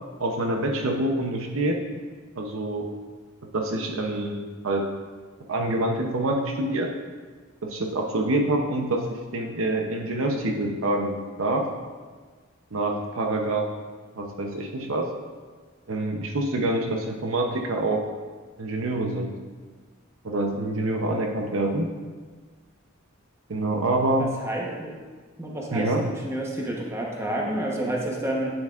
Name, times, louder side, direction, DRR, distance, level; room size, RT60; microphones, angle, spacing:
voice 1, 0.2-1.8 2.4-2.9 3.5-4.8 5.5-6.9 7.6-11.7 12.7-13.7 14.1-15.1 15.9-18.0 18.6-19.3 20.2-21.9 23.5-24.3 25.7-26.0, right 2 dB, 70° right, 2 dB, 0.7 m, -26 dB
voice 2, 24.2-24.9 25.4-28.5, right 1 dB, 15° right, -2 dB, 1.0 m, -29 dB
9.0 x 7.0 x 2.5 m, 1.4 s
head